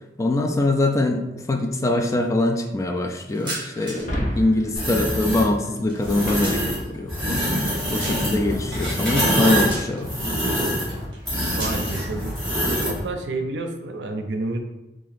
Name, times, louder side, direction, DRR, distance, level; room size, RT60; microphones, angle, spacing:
voice 1, 0.2-4.1 4.4-10.1, left 2 dB, 20° left, 3 dB, 0.3 m, -23 dB
sound 1, 3.3-4.2 4.5-6.9 7.3-8.5 9.3-10.2 11.1-12.0, right 1 dB, 30° right, 1.0 m, -38 dB
Shatter, 3.9-7.4, equal, 50° left, 0.8 m, -32 dB
sound 2, 4.7-5.5 6.0-6.8 7.1-13.0, equal, ahead, 1.3 m, -24 dB
voice 2, 11.6-12.3 12.8-14.6, right 2 dB, 80° right, 6 dB, 0.5 m, -29 dB
2.8 x 2.4 x 4.1 m, 0.98 s
head